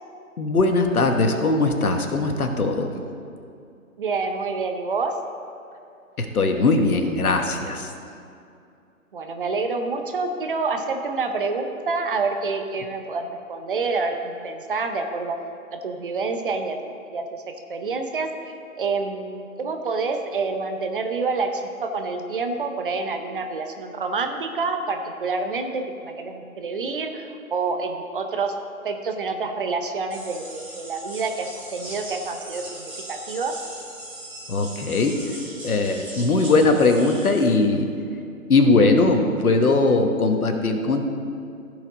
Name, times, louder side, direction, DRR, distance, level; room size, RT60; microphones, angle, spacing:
voice 1, 0.4-2.9 6.2-7.9 34.5-35.2 35.6-37.9 38.5-41.1, left 3 dB, 80° left, 5 dB, 1.3 m, -20 dB
voice 2, 4.0-5.1 9.1-15.4 15.7-16.8 17.1-17.4 17.7-18.3 18.8-28.5 28.8-33.6, right 4 dB, 40° right, 5 dB, 0.7 m, -27 dB
sound 1, 30.1-37.5, right 1 dB, 5° right, 1.4 m, -39 dB
15.0 x 5.0 x 4.0 m, 2.5 s
figure-of-eight pair, 145°, 43 cm